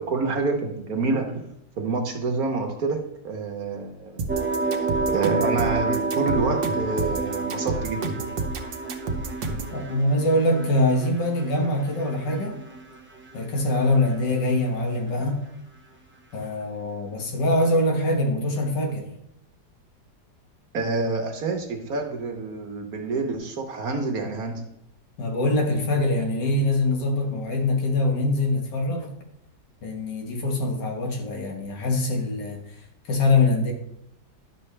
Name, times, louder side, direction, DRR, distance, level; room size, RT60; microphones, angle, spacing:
voice 1, 0.0-3.0 3.2-4.2 4.6-8.1 20.7-24.6, right 3 dB, 55° right, 3 dB, 1.4 m, -28 dB
sound 1, 4.2-9.8, right 3 dB, 85° right, 1.6 m, -30 dB
sound 2, 4.3-13.4 13.7-14.4, right 4 dB, 15° right, 0.3 m, -30 dB
voice 2, 9.7-12.6 13.3-15.4 16.3-19.1 25.2-29.1 29.8-32.6 33.1-33.7, left 2 dB, 70° left, 2 dB, 2.0 m, -23 dB
11.0 x 6.5 x 3.3 m, 0.78 s
omnidirectional pair, 1.9 m